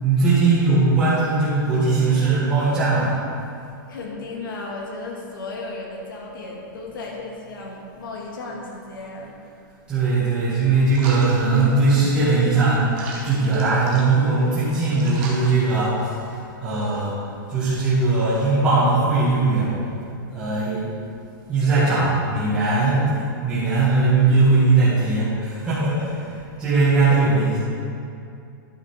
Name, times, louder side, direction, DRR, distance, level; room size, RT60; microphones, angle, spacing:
voice 1, 0.0-3.1 9.9-12.8 13.2-17.1 17.5-19.7 20.3-20.9 21.5-23.1 23.4-27.6, right 3 dB, 10° right, -14 dB, 1.7 m, -19 dB
voice 2, 3.9-9.3 27.1-27.2, left 3 dB, 75° left, -2 dB, 2.2 m, -34 dB
sound 1, 10.9-16.3, right 3 dB, 30° right, 1.4 m, -40 dB
11.5 x 5.7 x 5.0 m, 2.5 s
supercardioid pair, 180°, 11 cm